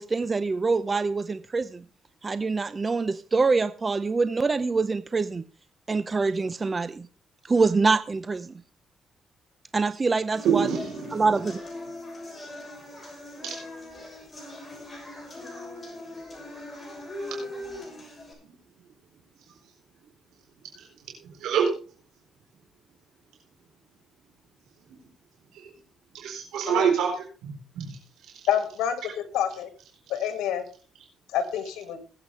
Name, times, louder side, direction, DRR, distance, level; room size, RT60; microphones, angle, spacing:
voice 1, 0.0-1.8 2.2-5.4 5.9-7.1 7.5-8.5 9.7-10.7 11.1-11.5, right 4 dB, 30° right, 0.6 m, -25 dB
sound 1, 10.3-18.3, left 1 dB, 20° left, 6.2 m, -40 dB
voice 2, 10.4-11.3 13.4-13.5 20.7-20.8 21.4-21.7 25.5-25.6 26.1-27.5 27.7-28.0, right 7 dB, 85° right, 4.1 m, -26 dB
voice 3, 28.5-28.9 29.3-29.7 30.1-30.6 31.3-32.0, left 9 dB, 90° left, 2.0 m, -27 dB
20.5 x 8.1 x 3.3 m
cardioid pair, 90°, 0 cm